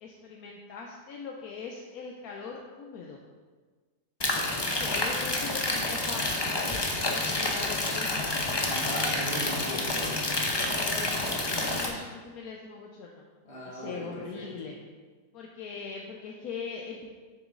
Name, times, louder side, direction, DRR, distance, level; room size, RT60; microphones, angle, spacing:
voice 1, 0.0-3.2 4.8-8.4 10.7-13.2 13.7-14.7 15.3-17.1, left 5 dB, 75° left, 0 dB, 1.2 m, -41 dB
sound 1, 4.2-11.9, left 2 dB, 30° left, 0.5 m, -29 dB
voice 2, 8.6-10.3 13.4-14.5, equal, 45° left, -6 dB, 2.3 m, -38 dB
7.1 x 6.9 x 3.8 m, 1.4 s
omnidirectional pair, 1.6 m